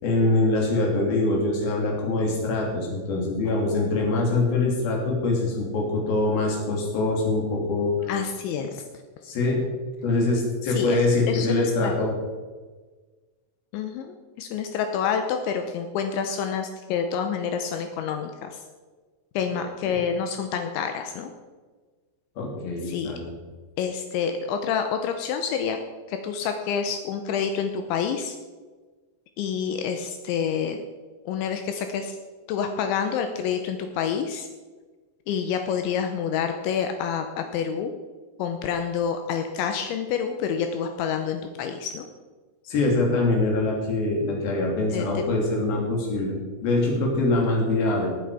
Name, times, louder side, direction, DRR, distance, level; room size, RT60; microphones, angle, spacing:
voice 1, 0.0-7.9 9.2-9.7 10.0-12.1 19.8-19.9 22.4-23.3 42.6-48.1, left 2 dB, 50° left, -1 dB, 4.4 m, -24 dB
voice 2, 8.1-8.8 10.7-11.0 11.3-11.9 13.7-18.6 19.3-21.3 22.8-23.1 23.8-25.8 26.1-28.4 29.4-30.8 31.3-32.2 32.5-34.5 35.3-37.9 38.4-42.0 44.9-45.3, left 7 dB, 80° left, 6 dB, 3.0 m, -28 dB
17.5 x 9.0 x 5.0 m, 1.4 s
omnidirectional pair, 5.7 m